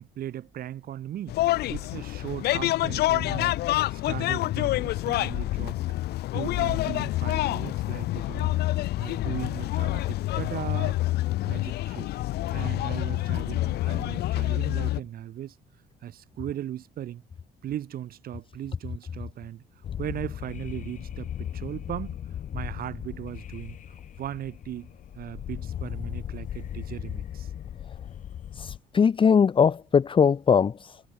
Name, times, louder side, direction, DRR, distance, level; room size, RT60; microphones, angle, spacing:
voice 1, 0.0-1.4 1.7-3.6 3.9-5.8 6.3-8.6 9.0-11.0 11.4-12.1 12.5-15.6 16.0-17.2 17.6-19.6 20.0-22.2 22.5-27.5, right 11 dB, 60° right, 3.6 m, -38 dB
sound 1, 1.3-15.0, left 16 dB, 75° left, 1.2 m, -27 dB
sound 2, 19.8-28.8, left 10 dB, 50° left, 1.2 m, -37 dB
voice 2, 28.5-31.0, left 6 dB, 30° left, 1.0 m, -21 dB
cardioid pair, 110°, 17 cm